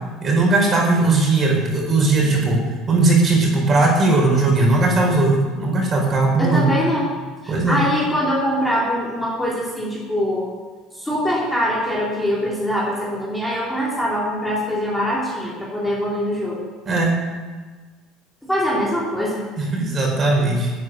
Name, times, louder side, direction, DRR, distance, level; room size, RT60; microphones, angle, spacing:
voice 1, 0.2-2.6 2.9-6.7 7.5-7.8 16.9-17.1 19.6-20.7, right 2 dB, 25° right, 1 dB, 4.6 m, -18 dB
voice 2, 6.4-7.1 7.4-10.5 10.9-16.7 18.4-19.4, equal, 5° left, -5 dB, 3.0 m, -23 dB
12.5 x 9.3 x 9.5 m, 1.4 s
cardioid pair, 145°, 0 cm